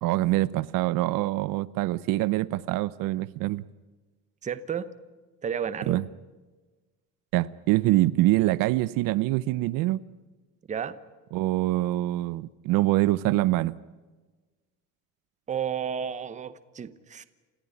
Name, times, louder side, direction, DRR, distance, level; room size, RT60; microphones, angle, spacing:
voice 1, 0.0-3.6 5.9-6.0 7.3-10.0 11.3-13.7, right 16 dB, 70° right, 0.7 m, -25 dB
voice 2, 4.4-4.9 5.4-6.0 10.7-11.0 15.5-17.2, right 8 dB, 20° right, 0.9 m, -32 dB
28.5 x 15.0 x 9.9 m
cardioid pair, 175°, 35 cm